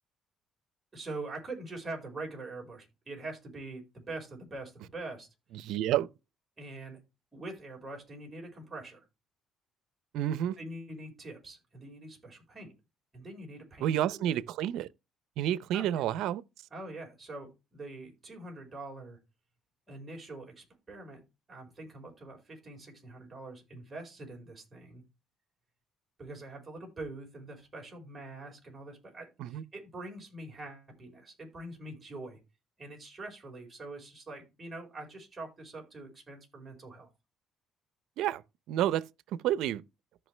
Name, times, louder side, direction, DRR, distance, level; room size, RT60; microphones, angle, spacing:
voice 1, 0.9-5.3 6.6-7.0 7.3-9.0 10.6-12.7 13.1-14.2 15.7-15.9 16.7-19.2 19.9-21.2 21.5-25.0 26.2-32.4 32.8-37.1, right 2 dB, 20° right, 4.9 m, -44 dB
voice 2, 5.5-6.1 10.1-10.6 13.8-14.9 15.4-16.4 29.4-29.6 38.2-38.4 38.7-39.0 39.3-39.8, right 12 dB, 80° right, 0.6 m, -29 dB
14.0 x 5.6 x 3.3 m
cardioid pair, 115°, 0 cm